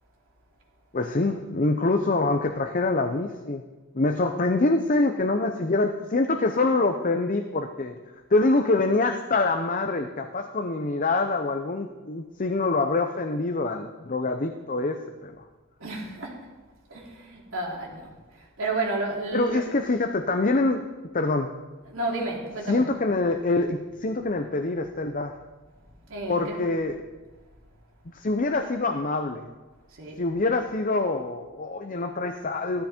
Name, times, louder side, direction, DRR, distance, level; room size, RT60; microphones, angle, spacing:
voice 1, 0.9-3.6 3.9-7.9 8.3-15.4 19.3-20.9 21.1-21.5 22.7-25.4 26.3-27.0 28.1-29.5 30.2-32.8, left 2 dB, 40° left, 6 dB, 0.7 m, -25 dB
voice 2, 15.8-16.4 16.9-19.6 21.9-22.9 26.1-26.6 29.9-30.2, right 2 dB, 65° right, -2 dB, 3.4 m, -32 dB
16.0 x 13.0 x 4.4 m, 1.2 s
head